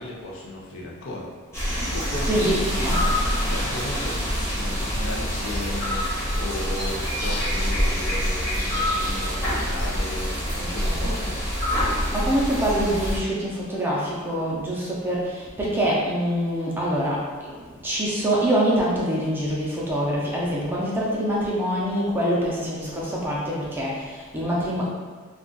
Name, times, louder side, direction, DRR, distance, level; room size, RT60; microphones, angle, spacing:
voice 1, 0.0-1.3 1.7-3.1 3.4-6.1 6.3-11.4, left 1 dB, 65° left, -3 dB, 0.6 m, -35 dB
sound 1, 1.5-13.2, equal, 10° left, 1.0 m, -26 dB
voice 2, 1.9-3.1 10.8-11.2 12.1-24.9, equal, 10° right, -6 dB, 0.5 m, -25 dB
2.4 x 2.3 x 3.8 m, 1.5 s
head